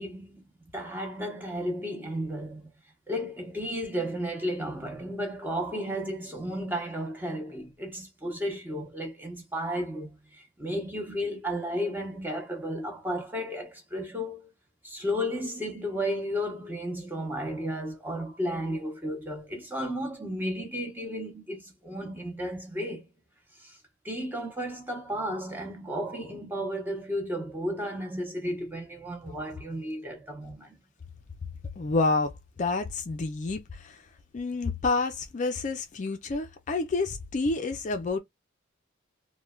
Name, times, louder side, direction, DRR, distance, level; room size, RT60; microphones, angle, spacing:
voice 1, 0.0-2.7 3.1-14.5 14.8-23.0 23.6-23.8 24.0-30.7, equal, 10° right, 0.8 m, -33 dB
voice 2, 31.8-32.3 32.6-34.1 34.3-38.2, left 3 dB, 40° left, 0.4 m, -29 dB
3.1 x 2.1 x 2.3 m
head